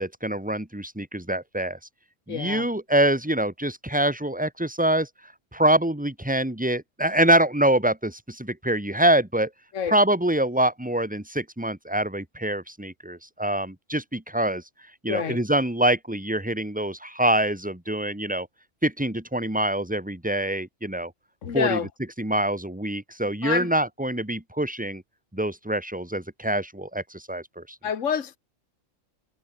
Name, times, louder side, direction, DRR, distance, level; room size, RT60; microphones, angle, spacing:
voice 1, 0.0-1.8 2.3-5.1 5.5-9.5 9.9-14.6 15.0-18.5 18.8-21.1 21.5-21.8 22.2-25.0 25.3-27.6, right 1 dB, 5° right, 2.4 m, -25 dB
voice 2, 2.3-2.7 9.7-9.9 15.1-15.4 21.4-21.9 23.4-23.7 27.8-28.4, left 7 dB, 70° left, 1.7 m, -27 dB
omnidirectional pair, 1.3 m